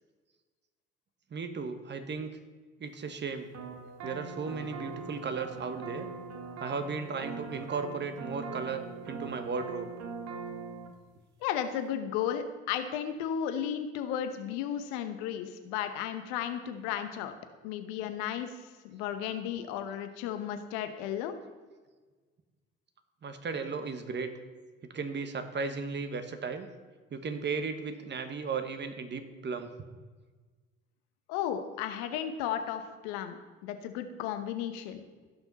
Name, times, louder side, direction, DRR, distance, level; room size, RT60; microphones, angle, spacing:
voice 1, 1.3-2.3 2.8-3.5 4.0-6.1 6.6-9.9 23.2-24.3 24.9-26.7 27.1-29.7, right 5 dB, 40° right, 9 dB, 1.3 m, -35 dB
sound 1, 3.5-10.9, right 4 dB, 60° right, 1.3 m, -42 dB
voice 2, 11.4-17.4 17.6-18.6 18.8-21.3 31.3-35.0, left 9 dB, 75° left, 8 dB, 1.0 m, -34 dB
16.0 x 5.9 x 4.1 m, 1.4 s
hypercardioid pair, 60°, 29 cm